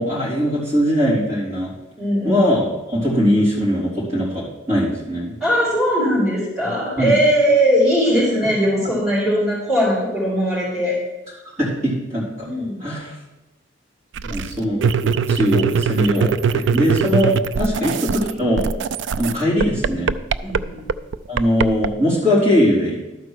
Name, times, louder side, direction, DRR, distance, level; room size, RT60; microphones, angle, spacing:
voice 1, 0.0-1.7 2.2-5.4 7.0-7.1 8.4-8.5 11.6-12.5 12.8-13.1 14.2-18.8 19.2-20.1 21.3-23.0, equal, 40° right, -8 dB, 3.9 m, -20 dB
voice 2, 2.0-2.4 5.4-11.0 12.4-12.8 20.4-20.8, equal, 5° right, -8 dB, 3.1 m, -19 dB
sound 1, 14.2-18.3 18.6-21.9, right 6 dB, 65° right, 0.3 m, -21 dB
12.0 x 4.4 x 6.4 m, 1.1 s
head